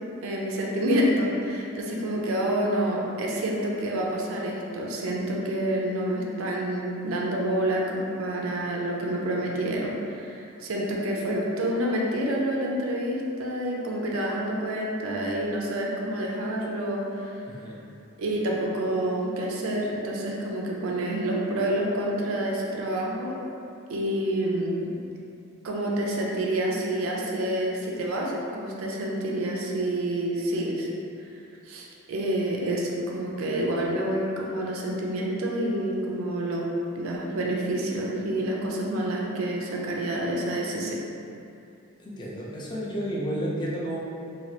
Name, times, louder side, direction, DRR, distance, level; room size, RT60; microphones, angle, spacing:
voice 1, 0.2-17.3 18.2-23.4 23.9-24.9 25.6-30.9 31.7-36.7 37.0-41.0, right 1 dB, 80° right, -2 dB, 0.4 m, -28 dB
voice 2, 17.5-17.8 42.0-44.0, equal, 20° left, -5 dB, 0.4 m, -31 dB
3.1 x 2.3 x 2.7 m, 2.6 s
head